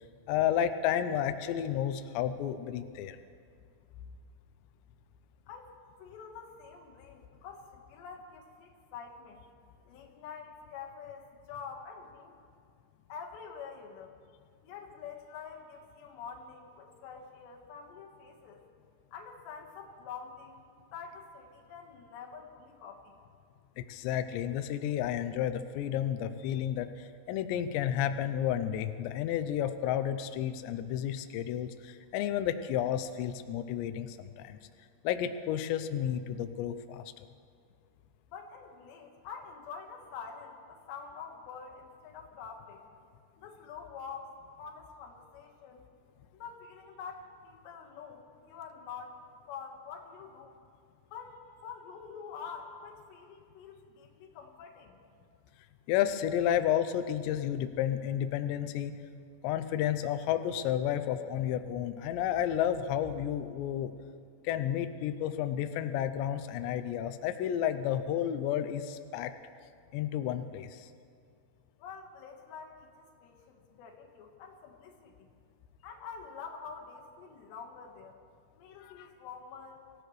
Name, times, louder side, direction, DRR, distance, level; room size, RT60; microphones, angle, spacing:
voice 1, 0.3-3.2 23.8-34.6 35.0-37.0 55.9-59.0 59.4-63.9 64.4-69.3 69.9-70.9 78.8-79.1, left 10 dB, 90° left, 9 dB, 2.5 m, -31 dB
voice 2, 6.0-9.4 9.9-12.3 13.1-14.1 14.6-18.6 19.1-23.2 38.3-42.8 43.4-45.8 46.3-49.2 49.5-50.6 51.1-55.0 71.8-75.3 75.8-78.2 78.5-79.8, left 6 dB, 70° left, 0 dB, 3.4 m, -46 dB
25.0 x 15.5 x 3.2 m, 2.3 s
omnidirectional pair, 5.8 m